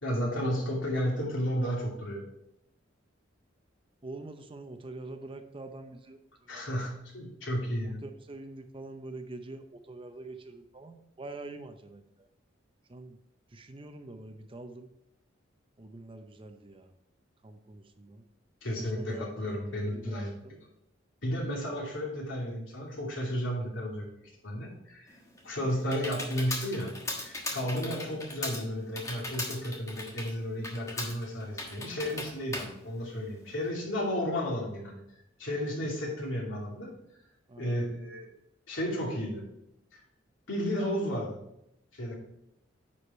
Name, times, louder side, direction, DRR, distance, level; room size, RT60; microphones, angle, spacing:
voice 1, 0.0-2.2 6.5-8.0 18.6-20.6 21.2-24.1 24.4-25.2 25.4-35.0 35.4-36.9 37.6-38.3 38.7-39.4 39.9-40.0 40.5-41.4 41.9-42.1, equal, 85° left, -3 dB, 2.7 m, -33 dB
voice 2, 4.0-6.8 7.8-12.3 12.9-13.2 13.5-14.9 15.8-16.9 17.4-18.2 18.7-19.6 19.9-20.6 27.7-28.1 37.5-37.9, right 2 dB, 30° right, 7 dB, 0.7 m, -45 dB
Computer keyboard, 25.1-33.7, left 2 dB, 15° left, 1.3 m, -39 dB
9.8 x 5.0 x 4.3 m, 0.82 s
head